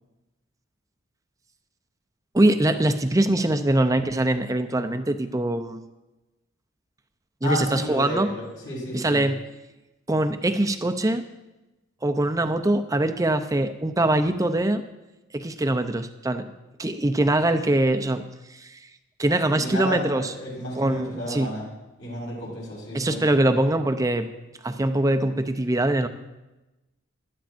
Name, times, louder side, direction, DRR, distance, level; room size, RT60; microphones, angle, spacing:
voice 1, 2.3-5.8 7.4-8.3 8.9-9.4 10.1-11.2 12.0-14.8 15.3-16.5 16.8-18.8 19.2-20.3 20.8-21.5 22.9-24.3 24.6-26.1, right 1 dB, 15° right, 9 dB, 0.5 m, -23 dB
voice 2, 7.4-9.2 19.5-21.7 22.0-23.6, left 1 dB, 65° left, -5 dB, 4.8 m, -32 dB
16.0 x 11.5 x 2.6 m, 1.0 s
head